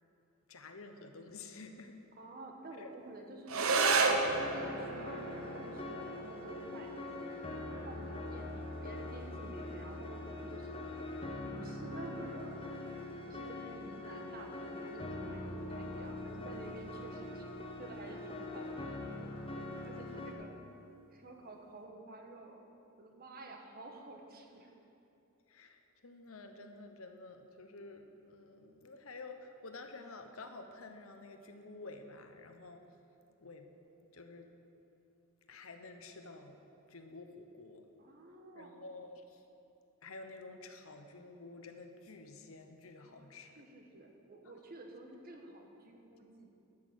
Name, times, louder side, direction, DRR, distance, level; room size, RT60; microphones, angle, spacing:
voice 1, 0.5-1.9 2.8-2.9 20.3-20.8 25.5-32.9 33.4-33.7 34.0-34.5 35.5-36.6 36.9-37.8 38.5-39.4 40.0-43.6 44.4-44.5, left 3 dB, 80° left, 6 dB, 1.0 m, -50 dB
voice 2, 2.1-4.2 4.5-7.4 7.7-10.7 11.5-12.6 13.3-17.4 17.8-19.0 19.8-20.5 21.1-22.6 23.0-24.7 38.0-38.7 43.0-43.3 43.6-46.5, right 2 dB, 45° right, 2 dB, 1.4 m, -50 dB
sound 1, 3.5-12.5, right 4 dB, 85° right, 0.9 m, -35 dB
sound 2, 4.3-20.3, left 2 dB, 25° left, 1.1 m, -43 dB
12.5 x 6.5 x 8.0 m, 2.8 s
head